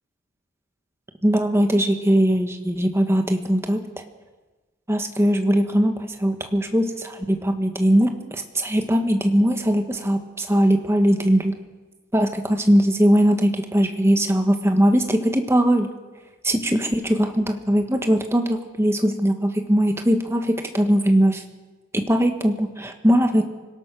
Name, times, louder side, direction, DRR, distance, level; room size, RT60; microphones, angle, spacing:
voice 1, 1.2-4.0 4.9-11.5 12.1-15.9 16.4-21.4 21.9-23.4, equal, 15° right, 5 dB, 1.6 m, -20 dB
25.5 x 17.0 x 6.3 m, 1.2 s
head